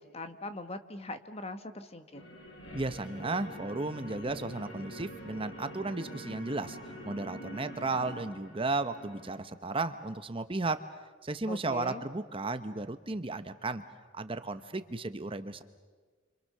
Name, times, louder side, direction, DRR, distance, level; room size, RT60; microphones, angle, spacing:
voice 1, 0.0-2.3 11.5-12.0, left 2 dB, 30° left, 9 dB, 1.3 m, -41 dB
sound 1, 2.1-9.4, equal, 75° left, 6.6 m, -45 dB
voice 2, 2.7-6.8 7.0-10.8 11.2-13.8 14.1-15.6, right 3 dB, 30° right, 10 dB, 0.9 m, -34 dB
29.5 x 26.0 x 6.7 m, 1.4 s
head